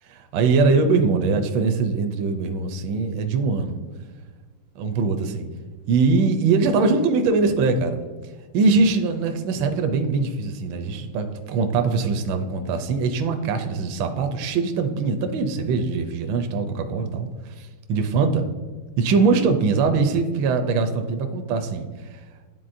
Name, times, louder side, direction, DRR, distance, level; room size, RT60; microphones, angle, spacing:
voice 1, 0.0-3.8 4.8-5.5 5.9-8.0 8.5-18.5 19.0-22.2, right 4 dB, 75° right, 5 dB, 1.2 m, -22 dB
10.0 x 3.8 x 2.6 m, 1.4 s
omnidirectional pair, 2.3 m